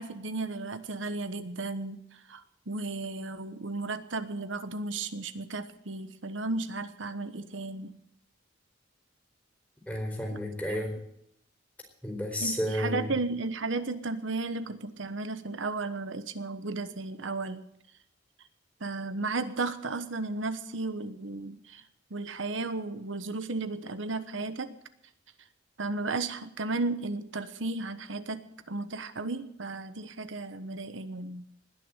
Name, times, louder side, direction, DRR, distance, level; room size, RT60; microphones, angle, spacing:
voice 1, 0.0-2.0 2.3-7.9 12.4-17.6 18.8-21.8 22.1-24.7 25.8-31.5, right 3 dB, 80° right, 11 dB, 1.2 m, -34 dB
voice 2, 9.9-11.0 12.0-13.1, equal, 10° left, 0 dB, 4.2 m, -31 dB
20.0 x 6.8 x 9.0 m, 0.74 s
head